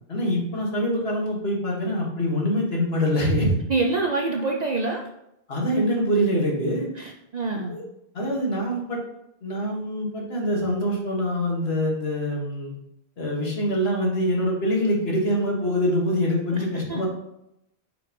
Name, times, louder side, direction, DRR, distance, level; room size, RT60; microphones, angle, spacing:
voice 1, 0.1-3.6 5.5-6.9 7.7-7.8 8.1-9.0 9.4-12.7 13.2-17.1, equal, 75° left, -2 dB, 1.9 m, -24 dB
voice 2, 3.7-5.0 7.0-7.8 16.5-17.0, right 3 dB, 50° right, 1 dB, 0.6 m, -26 dB
5.8 x 3.9 x 5.2 m, 0.82 s
omnidirectional pair, 1.1 m